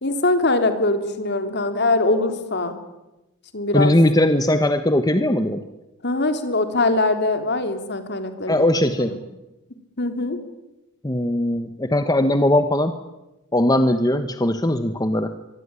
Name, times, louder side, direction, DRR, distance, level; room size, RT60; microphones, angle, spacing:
voice 1, 0.0-2.7 3.5-3.9 6.0-8.6 9.0-9.2 10.0-10.4, left 2 dB, 50° left, 7 dB, 3.5 m, -22 dB
voice 2, 3.7-5.6 8.5-9.1 11.0-13.0 13.5-15.3, left 1 dB, 20° left, 8 dB, 1.2 m, -19 dB
24.5 x 23.5 x 9.8 m, 0.98 s
head